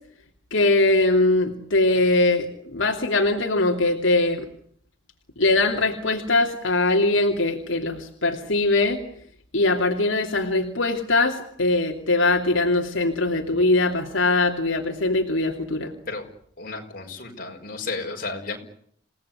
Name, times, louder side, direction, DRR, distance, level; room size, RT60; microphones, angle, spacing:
voice 1, 0.5-4.5 5.4-9.0 9.5-15.9, left 2 dB, 80° left, 1 dB, 2.9 m, -21 dB
voice 2, 16.6-18.6, left 3 dB, 45° left, 2 dB, 5.9 m, -33 dB
29.0 x 18.0 x 9.8 m, 0.66 s
head